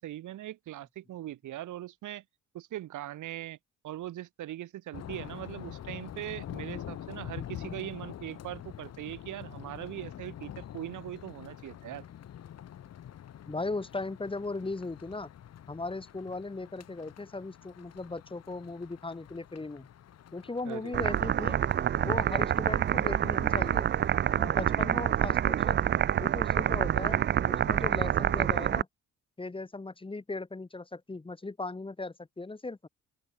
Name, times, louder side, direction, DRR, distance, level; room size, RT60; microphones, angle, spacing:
voice 1, 0.0-2.2 2.5-3.6 3.8-12.0 20.7-21.0, right 13 dB, 80° right, 2.1 m, -40 dB
sound 1, 4.9-24.4, left 10 dB, 55° left, 1.3 m, -46 dB
voice 2, 13.5-15.3 15.7-19.9 20.3-21.6 22.0-23.9 24.3-25.8 26.2-28.9 29.4-32.8, left 3 dB, 15° left, 1.4 m, -37 dB
sound 2, 20.9-28.8, right 10 dB, 35° right, 0.4 m, -27 dB
open air
cardioid pair, 90°, 30 cm